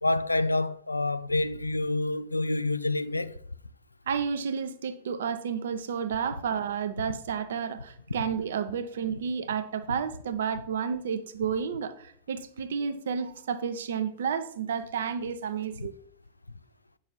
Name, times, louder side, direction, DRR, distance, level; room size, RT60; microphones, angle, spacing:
voice 1, 0.0-3.4 7.0-7.1 15.8-15.9, left 2 dB, 85° left, 0.4 m, -28 dB
voice 2, 4.1-15.9, right 7 dB, 65° right, 0.7 m, -31 dB
9.4 x 6.3 x 4.1 m
figure-of-eight pair, 90°, 0 cm